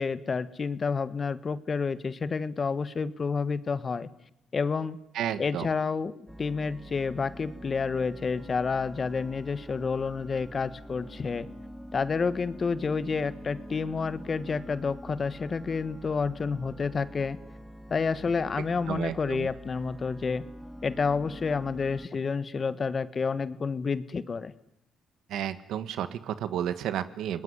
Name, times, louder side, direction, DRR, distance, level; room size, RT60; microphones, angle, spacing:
voice 1, 0.0-4.1 4.5-5.0 5.4-11.5 11.9-17.4 17.9-20.4 20.8-24.5, left 5 dB, 40° left, 15 dB, 1.4 m, -29 dB
voice 2, 5.1-5.7 18.9-19.5 25.3-27.4, right 10 dB, 80° right, 13 dB, 1.5 m, -32 dB
sound 1, 6.3-22.1, equal, ahead, 2.0 m, -45 dB
30.0 x 19.5 x 9.9 m, 0.83 s
cardioid pair, 90°, 0 cm